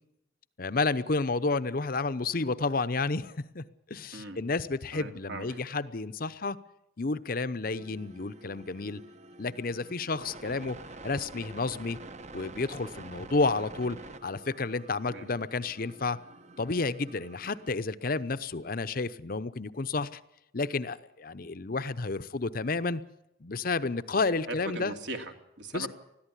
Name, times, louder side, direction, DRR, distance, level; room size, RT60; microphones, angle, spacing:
voice 1, 0.6-6.6 7.0-9.0 9.4-10.8 11.0-12.0 12.3-14.0 14.2-16.2 16.6-20.2 20.5-23.0 23.4-24.9 25.7-25.9, left 3 dB, 50° left, 13 dB, 0.8 m, -31 dB
voice 2, 4.9-5.6 15.1-15.3 24.5-25.9, right 2 dB, 70° right, 5 dB, 2.7 m, -39 dB
sound 1, 7.6-17.7, right 2 dB, 35° right, 1.0 m, -48 dB
20.5 x 14.0 x 9.8 m, 0.83 s
head